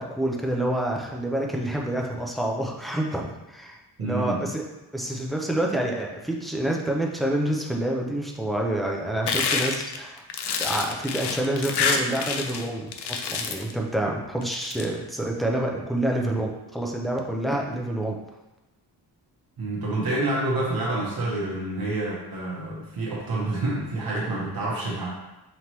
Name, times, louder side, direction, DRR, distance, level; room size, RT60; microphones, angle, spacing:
voice 1, 0.0-3.7 4.0-4.6 4.9-10.2 10.6-18.2, right 1 dB, ahead, -1 dB, 0.3 m, -28 dB
voice 2, 4.0-4.5 19.6-25.1, right 2 dB, 60° right, -4 dB, 0.9 m, -28 dB
sound 1, 9.3-12.6 12.9-13.7 14.4-14.8, left 5 dB, 75° left, 0.5 m, -27 dB
5.2 x 2.9 x 3.0 m, 0.99 s
wide cardioid pair, 175°, 41 cm